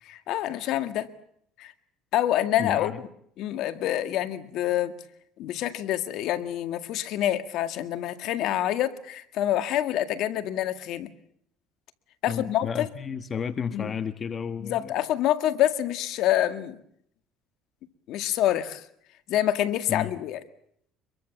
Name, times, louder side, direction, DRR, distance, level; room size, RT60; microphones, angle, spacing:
voice 1, 0.1-1.1 1.6-1.7 2.1-2.9 3.4-4.9 5.4-11.1 12.2-12.9 13.7-13.9 14.6-16.8 18.1-18.8 19.3-20.4, left 12 dB, 70° left, 10 dB, 1.9 m, -26 dB
voice 2, 2.6-3.0 12.3-14.9 19.9-20.1, left 7 dB, 40° left, 11 dB, 1.2 m, -32 dB
25.5 x 22.5 x 7.3 m, 0.69 s
supercardioid pair, 90°, 0 cm